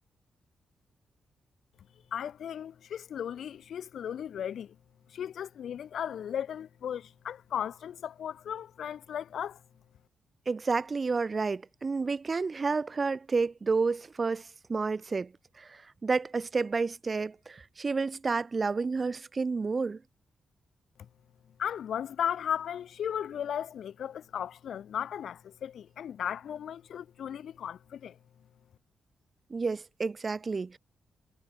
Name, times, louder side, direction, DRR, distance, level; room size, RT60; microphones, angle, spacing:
voice 1, 2.1-4.7 5.1-9.6 21.6-28.2, left 9 dB, 75° left, 2.9 m, -36 dB
voice 2, 10.5-20.0 29.5-30.8, right 4 dB, 40° right, 2.9 m, -30 dB
cardioid pair, 75°, 0 cm